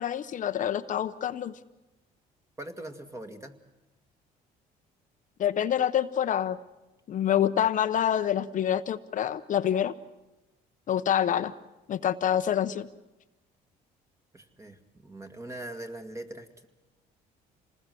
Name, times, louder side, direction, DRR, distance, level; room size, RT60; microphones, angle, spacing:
voice 1, 0.0-1.5 5.4-6.6 7.1-9.9 10.9-11.5 11.9-12.9, left 10 dB, 50° left, 10 dB, 0.8 m, -26 dB
voice 2, 2.6-3.5 14.3-16.7, right 1 dB, 15° right, 7 dB, 1.9 m, -41 dB
27.0 x 20.0 x 7.8 m, 1.0 s
cardioid pair, 110°, 17 cm